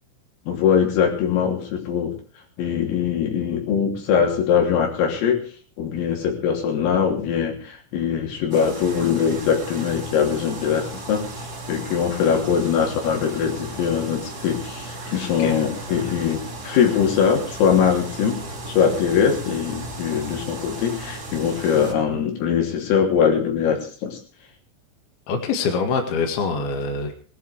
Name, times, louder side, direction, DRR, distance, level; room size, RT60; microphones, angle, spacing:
voice 1, 0.5-2.1 2.6-5.4 5.8-18.4 18.7-24.2, left 7 dB, 80° left, 1 dB, 5.8 m, -22 dB
sound 1, 8.5-21.9, right 2 dB, 25° right, 2.2 m, -35 dB
voice 2, 25.3-27.2, left 4 dB, 60° left, 4 dB, 3.4 m, -24 dB
20.0 x 11.0 x 4.8 m, 0.42 s
omnidirectional pair, 5.9 m